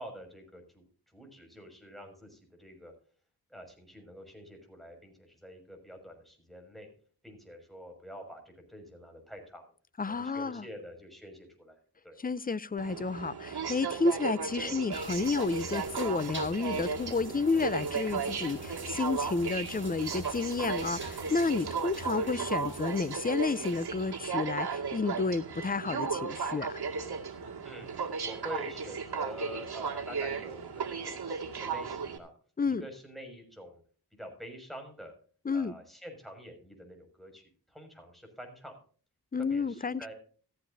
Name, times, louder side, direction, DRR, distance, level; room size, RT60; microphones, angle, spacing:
voice 1, 0.0-2.9 3.5-6.9 7.2-9.7 10.1-12.2 14.6-14.8 22.1-22.4 27.6-27.9 28.2-32.3 32.6-33.8 34.1-35.1 35.5-38.7 39.4-40.1, equal, ahead, 6.2 m, -47 dB
voice 2, 10.0-10.6 12.2-26.8 32.6-32.8 35.5-35.8 39.3-40.1, left 4 dB, 20° left, 0.6 m, -31 dB
Aircraft, 12.8-32.2, right 5 dB, 75° right, 2.2 m, -35 dB
sound 1, 14.9-24.0, right 1 dB, 30° right, 4.4 m, -46 dB
15.0 x 14.5 x 2.7 m
wide cardioid pair, 90°, 39 cm